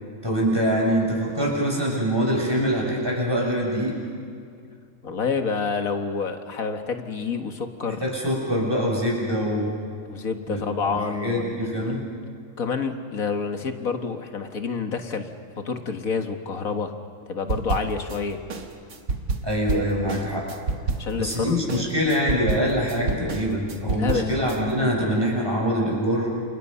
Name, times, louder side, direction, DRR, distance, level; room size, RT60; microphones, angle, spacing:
voice 1, 0.2-3.9 8.0-9.7 10.5-12.0 19.4-20.5 21.2-26.3, equal, 15° right, -3 dB, 6.8 m, -24 dB
voice 2, 5.0-8.0 10.1-12.0 12.6-15.3 15.6-16.9 17.3-18.4 21.0-21.9 23.9-24.3, left 5 dB, 75° left, 6 dB, 2.0 m, -28 dB
sound 1, 17.5-18.2 18.5-21.4 21.7-24.6, right 3 dB, 75° right, 2.0 m, -29 dB
29.0 x 28.5 x 5.6 m, 2.4 s
omnidirectional pair, 1.5 m